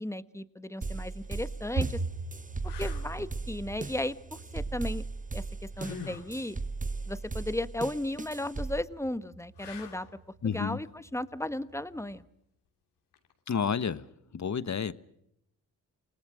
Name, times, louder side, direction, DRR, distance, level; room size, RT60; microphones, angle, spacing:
voice 1, 0.0-2.0 2.6-5.0 5.3-6.6 7.1-10.1 10.4-12.2, left 1 dB, 5° left, 14 dB, 1.3 m, -35 dB
sound 1, 0.8-8.8, right 3 dB, 20° right, 1.0 m, -37 dB
sound 2, 1.2-1.3 1.9-2.0 2.6-3.1 5.8-6.3 9.6-10.2 13.1-13.3, left 6 dB, 90° left, 2.9 m, -44 dB
sound 3, 1.2-12.2, right 4 dB, 65° right, 6.3 m, -42 dB
voice 2, 10.4-10.8 13.5-14.1 14.3-14.9, left 6 dB, 45° left, 15 dB, 1.3 m, -30 dB
29.0 x 19.0 x 6.4 m, 0.75 s
cardioid pair, 60°, 39 cm